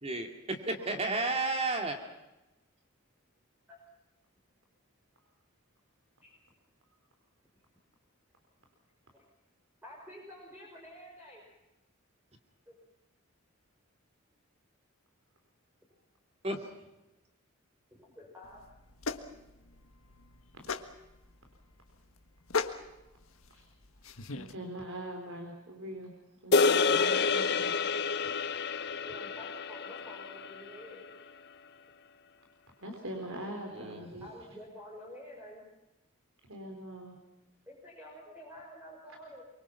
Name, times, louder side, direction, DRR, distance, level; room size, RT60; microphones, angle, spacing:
voice 1, 0.0-2.0 16.4-16.7 33.7-34.2, right 2 dB, 30° right, 4 dB, 2.5 m, -33 dB
voice 2, 9.8-11.4 12.7-12.8 17.9-18.6 28.9-31.1 34.1-35.6 37.7-39.4, left 1 dB, 10° right, -3 dB, 5.6 m, -49 dB
sound 1, 18.4-24.5, left 4 dB, 80° left, 1.6 m, -39 dB
voice 3, 24.3-26.1 26.4-27.7 28.3-28.7 32.8-34.3 36.5-37.2, right 1 dB, 75° right, 2 dB, 4.3 m, -42 dB
sound 2, 26.5-31.0, left 4 dB, 50° left, 1.0 m, -29 dB
25.0 x 24.0 x 5.9 m, 0.97 s
head